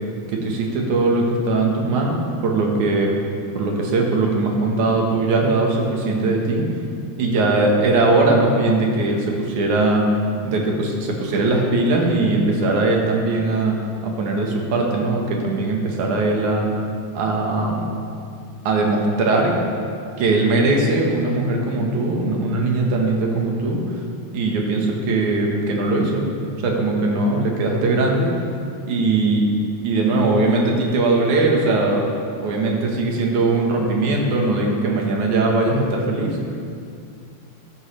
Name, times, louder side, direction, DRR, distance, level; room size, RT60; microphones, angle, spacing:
voice 1, 0.3-3.1 3.5-6.6 7.2-10.1 10.4-16.7 17.1-17.9 18.7-19.6 20.2-24.0 24.3-26.2 26.6-28.3 28.9-29.5 29.8-32.0 32.4-36.4, right 2 dB, 75° right, 0 dB, 2.8 m, -20 dB
14.5 x 11.0 x 3.3 m, 2.4 s
omnidirectional pair, 3.5 m